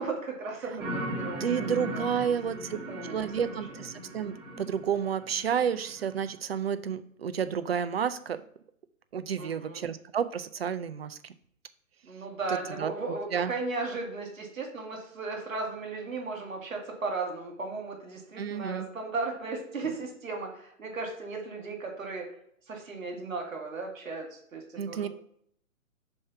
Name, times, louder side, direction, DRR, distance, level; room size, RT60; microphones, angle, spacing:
voice 1, 0.0-2.4 2.7-3.5 9.4-9.9 12.0-22.3 22.7-25.1, right 3 dB, 70° right, 2 dB, 2.2 m, -36 dB
sound 1, 0.8-6.3, equal, 25° right, 2.7 m, -38 dB
voice 2, 1.4-2.8 3.1-8.4 9.1-11.2 12.8-12.9 13.3-13.5 18.4-18.9 24.8-25.1, right 8 dB, 45° right, 12 dB, 0.5 m, -30 dB
5.4 x 4.5 x 5.6 m, 0.67 s
figure-of-eight pair, 135°, 42 cm